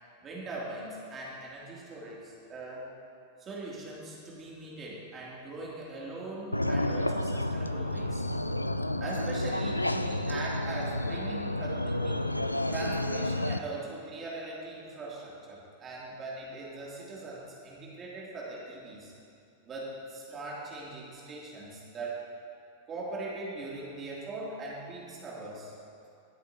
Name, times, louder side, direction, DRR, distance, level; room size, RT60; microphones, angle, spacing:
voice 1, 0.2-2.9 3.4-8.2 9.0-12.2 12.7-19.1 19.6-22.2 22.8-25.7, right 2 dB, 25° right, -5 dB, 2.8 m, -40 dB
sound 1, 6.5-13.6, left 1 dB, 85° left, 0.3 m, -30 dB
20.0 x 8.3 x 2.9 m, 2.6 s
figure-of-eight pair, 90°, 0 cm